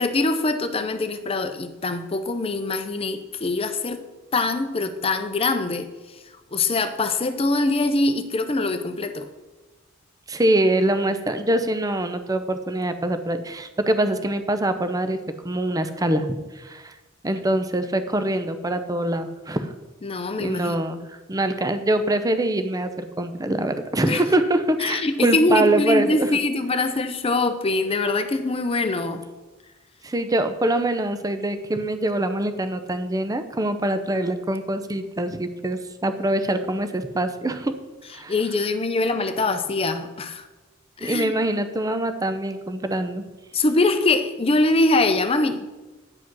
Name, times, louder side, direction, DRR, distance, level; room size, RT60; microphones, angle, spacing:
voice 1, 0.0-4.0 4.3-5.9 6.5-9.3 20.0-20.8 24.1-24.2 24.8-29.2 38.3-40.5 41.0-41.3 43.5-45.6, left 2 dB, 30° left, 9 dB, 0.6 m, -23 dB
voice 2, 10.3-15.2 15.4-16.3 16.5-16.9 17.2-19.7 20.4-26.3 30.0-37.7 38.1-38.3 41.0-43.2, right 1 dB, 20° right, 9 dB, 0.6 m, -24 dB
9.6 x 4.9 x 6.1 m, 1.2 s
head